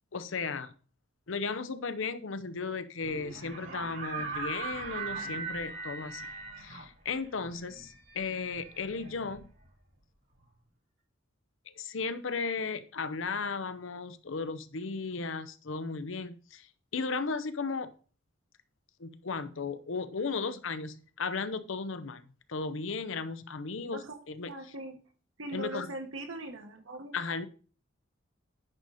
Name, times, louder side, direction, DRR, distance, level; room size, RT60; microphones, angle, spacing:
voice 1, 0.1-0.7 1.3-6.3 6.6-9.5 11.7-16.7 16.9-17.9 19.0-22.2 22.5-24.5 25.5-25.9 27.1-27.5, left 4 dB, 75° left, 12 dB, 0.7 m, -35 dB
sound 1, 3.0-9.9, right 4 dB, 70° right, 4.5 m, -40 dB
voice 2, 24.5-24.9 25.4-27.1, right 2 dB, 90° right, 4 dB, 1.6 m, -40 dB
10.0 x 4.2 x 4.9 m, 0.39 s
head